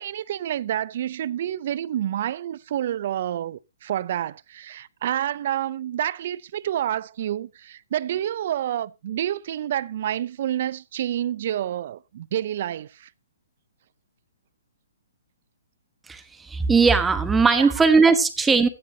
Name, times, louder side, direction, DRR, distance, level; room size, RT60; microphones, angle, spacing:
voice 1, 0.0-13.1 17.5-17.7, right 11 dB, 50° right, 0.5 m, -28 dB
voice 2, 16.1-18.7, right 4 dB, 10° right, 1.1 m, -19 dB
15.5 x 9.9 x 2.8 m
hypercardioid pair, 150°, 0 cm